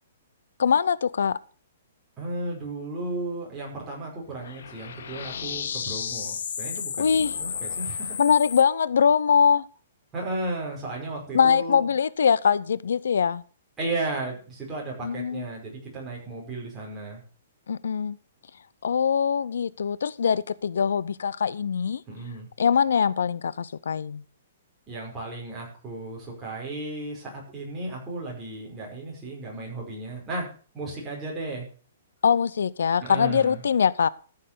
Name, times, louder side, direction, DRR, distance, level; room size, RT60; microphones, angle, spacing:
voice 1, 0.6-1.4 7.0-7.4 8.2-9.7 11.3-13.4 15.0-15.4 17.7-18.2 18.8-22.0 22.6-24.2 32.2-34.1, left 7 dB, 85° left, 0.6 m, -22 dB
voice 2, 2.2-8.2 10.1-11.8 13.8-17.2 22.1-22.5 24.9-30.5 30.7-31.7 33.0-33.6, right 2 dB, 10° right, 5.1 m, -34 dB
sound 1, 4.3-8.6, left 7 dB, 65° left, 1.4 m, -33 dB
14.0 x 6.6 x 6.8 m
hypercardioid pair, 175°, 0 cm